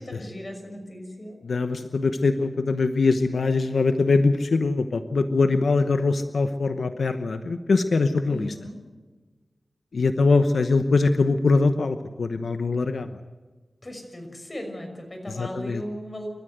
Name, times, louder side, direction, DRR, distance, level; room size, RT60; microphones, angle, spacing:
voice 1, 0.0-1.4 8.3-8.8 13.8-16.3, equal, 30° left, 4 dB, 5.9 m, -37 dB
voice 2, 1.4-8.5 9.9-13.1 15.4-15.8, left 3 dB, 85° left, 8 dB, 1.0 m, -22 dB
29.0 x 14.0 x 7.9 m, 1.3 s
wide cardioid pair, 90°, 0 cm